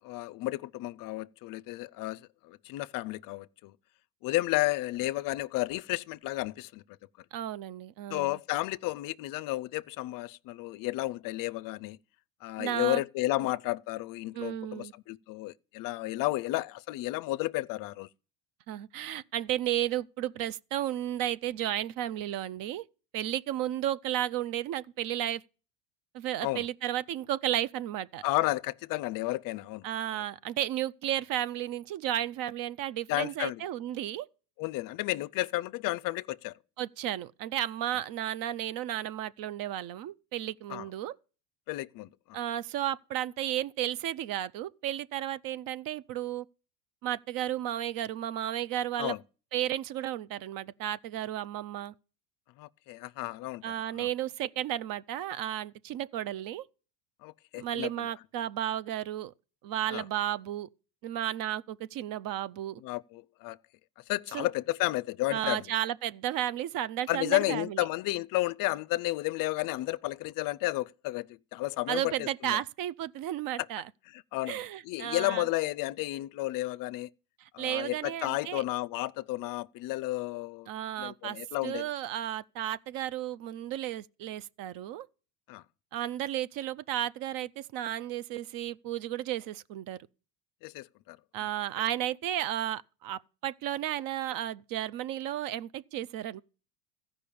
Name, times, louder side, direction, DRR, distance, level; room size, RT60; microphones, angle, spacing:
voice 1, 0.0-3.7 4.2-6.8 8.1-12.0 12.4-18.1 26.4-26.7 28.2-29.8 30.1-30.2 33.1-33.6 34.6-36.5 40.7-40.8 41.7-42.4 49.0-49.2 52.6-54.1 57.2-58.1 59.9-60.0 62.8-63.6 64.1-65.7 67.1-72.6 74.1-77.1 77.5-80.7 81.0-81.9 85.5-85.6 90.6-91.2, left 19 dB, 50° left, 0.5 m, -32 dB
voice 2, 7.3-8.4 12.6-13.0 14.3-14.9 18.7-22.8 23.1-25.4 26.1-28.2 29.8-34.3 36.8-41.1 42.3-46.5 47.0-49.2 49.5-51.9 53.6-56.6 57.5-59.3 59.6-60.7 61.0-62.8 64.3-64.5 65.3-67.8 71.9-73.8 74.5-75.5 77.4-78.6 80.7-81.4 81.6-85.1 85.9-90.0 91.3-96.4, right 12 dB, 50° right, 0.6 m, -33 dB
14.5 x 5.4 x 8.5 m
supercardioid pair, 105°, 46 cm